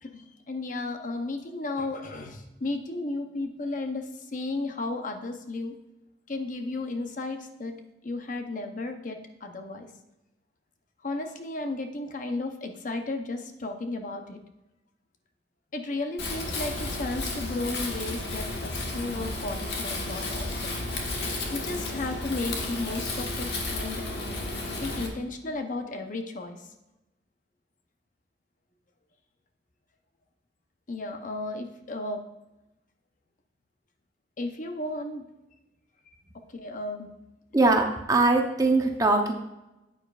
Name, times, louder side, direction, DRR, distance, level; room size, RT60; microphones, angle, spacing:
voice 1, 0.0-5.7 6.3-7.8 8.0-9.9 11.0-14.4 15.7-20.7 21.5-24.0 24.7-26.6 30.9-32.2 34.4-35.2 36.5-37.1, left 2 dB, 45° left, 5 dB, 0.7 m, -34 dB
Wind, 16.2-25.1, left 2 dB, 65° left, 1.4 m, -32 dB
voice 2, 37.5-39.3, right 2 dB, 20° right, 3 dB, 0.8 m, -22 dB
9.4 x 8.9 x 2.4 m, 0.96 s
head